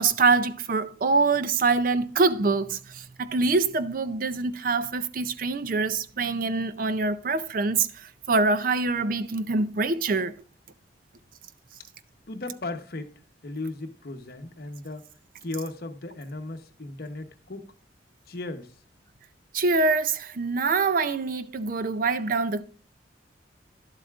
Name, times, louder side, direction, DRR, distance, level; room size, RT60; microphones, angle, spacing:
voice 1, 0.0-10.3 19.5-22.6, right 4 dB, 50° right, 0.5 m, -25 dB
voice 2, 12.3-13.1 13.4-15.1 15.4-17.7 18.3-18.7, left 2 dB, 55° left, 0.9 m, -36 dB
11.5 x 7.9 x 2.4 m
head